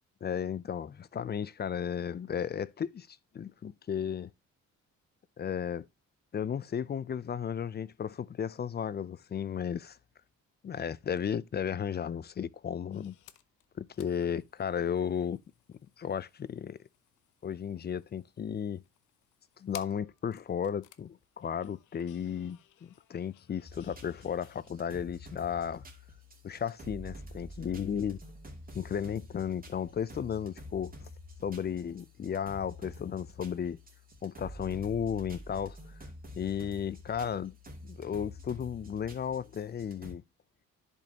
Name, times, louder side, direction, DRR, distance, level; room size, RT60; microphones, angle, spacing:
voice 1, 0.2-4.3 5.4-5.9 6.3-10.0 10.6-13.2 13.8-15.4 16.0-16.8 17.4-18.8 19.6-25.8 26.4-28.2 28.7-30.9 31.4-33.8 34.2-35.8 36.4-37.5 37.8-40.2, left 8 dB, 35° left, 0.5 m, -34 dB
sound 1, 12.9-24.7, left 13 dB, 85° left, 0.8 m, -57 dB
sound 2, 23.6-40.1, left 1 dB, 30° right, 2.7 m, -48 dB
10.5 x 5.5 x 2.9 m
cardioid pair, 90°, 30 cm